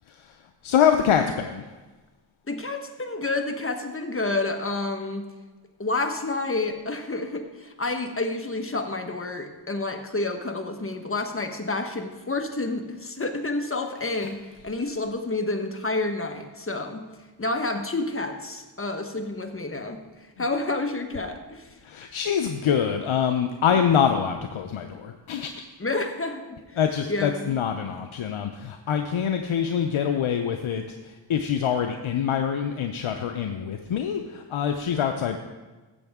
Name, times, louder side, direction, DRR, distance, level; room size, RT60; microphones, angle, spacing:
voice 1, 0.1-1.7 14.0-14.3 21.8-25.5 26.8-35.4, left 8 dB, 85° left, 6 dB, 0.6 m, -25 dB
voice 2, 2.5-5.3 5.8-14.4 14.6-17.1 17.4-20.0 20.4-21.7 25.8-26.6 27.1-27.6, left 2 dB, 25° left, 5 dB, 1.2 m, -29 dB
13.5 x 7.7 x 3.6 m, 1.2 s
cardioid pair, 40°, 47 cm